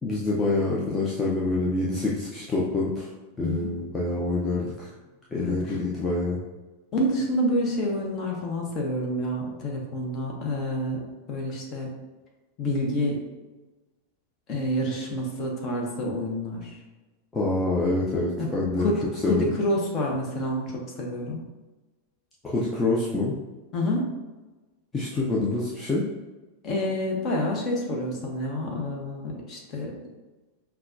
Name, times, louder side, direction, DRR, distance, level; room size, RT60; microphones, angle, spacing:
voice 1, 0.0-3.1 3.4-4.9 5.3-6.4 17.3-18.9 19.2-19.4 22.4-23.3 24.9-26.0, left 2 dB, 15° left, -5 dB, 0.6 m, -26 dB
voice 2, 3.4-3.7 5.3-5.8 6.9-11.9 12.6-13.2 14.5-16.8 18.4-21.4 23.7-24.1 26.6-29.9, left 1 dB, 35° left, -1 dB, 0.9 m, -28 dB
5.5 x 2.3 x 2.6 m, 1.2 s
figure-of-eight pair, 90°, 0 cm